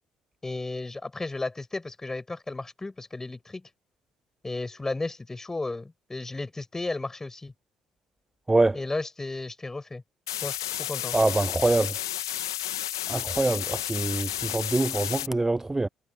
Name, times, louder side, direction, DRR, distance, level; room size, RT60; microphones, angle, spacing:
voice 1, 0.4-3.7 4.4-7.5 8.7-10.0 10.4-11.2, left 2 dB, 20° left, 7.6 m, -34 dB
voice 2, 8.5-8.8 11.1-12.0 13.1-15.9, right 2 dB, 15° right, 0.6 m, -24 dB
sound 1, 10.3-15.3, left 12 dB, 85° left, 2.2 m, -32 dB
hypercardioid pair, 50°, 2 cm